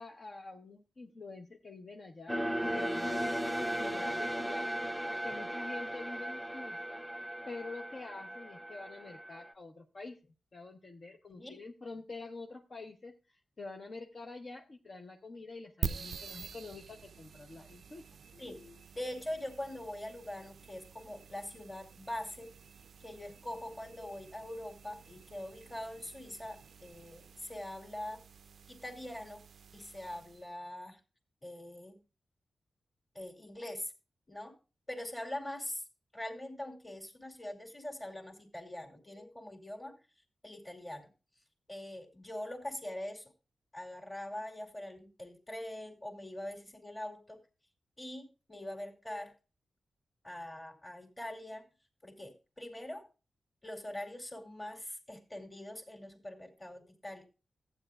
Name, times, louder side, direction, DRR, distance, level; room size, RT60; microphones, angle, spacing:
voice 1, 0.0-4.7 5.2-7.0 7.5-10.2 10.5-18.0, left 3 dB, 45° left, 2 dB, 0.9 m, -47 dB
sound 1, 2.3-9.5, equal, ahead, 0.7 m, -36 dB
sound 2, 15.8-30.5, right 6 dB, 70° right, 0.4 m, -47 dB
voice 2, 18.3-22.5 23.0-28.2 28.7-29.4 29.7-31.0 31.4-32.0 33.1-33.9 34.3-34.5 34.9-35.8 36.1-40.0 40.4-41.1 41.7-43.3 43.7-47.4 48.0-49.3 50.2-51.6 52.0-53.1 53.6-57.2, left 1 dB, 20° left, 2 dB, 2.3 m, -43 dB
14.5 x 8.9 x 2.4 m, 0.31 s
wide cardioid pair, 110°, 0 cm